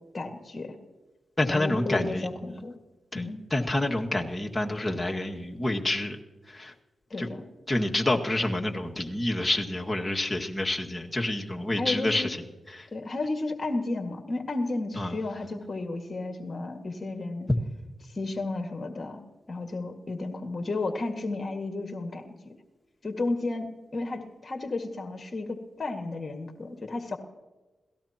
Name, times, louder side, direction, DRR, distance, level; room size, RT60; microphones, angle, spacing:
voice 1, 0.1-0.8 1.5-2.8 3.1-3.4 7.1-7.5 11.8-12.3 12.9-17.5 18.0-19.2 19.5-22.5 23.0-27.2, left 2 dB, 45° left, 4 dB, 1.9 m, -33 dB
voice 2, 1.4-2.3 3.1-3.2 3.5-6.2 6.5-6.7 7.2-7.3 7.7-12.4 12.7-12.9 15.0-15.2, left 1 dB, 20° left, 1 dB, 1.9 m, -28 dB
28.0 x 17.5 x 2.9 m, 1.2 s
cardioid pair, 55°, 0 cm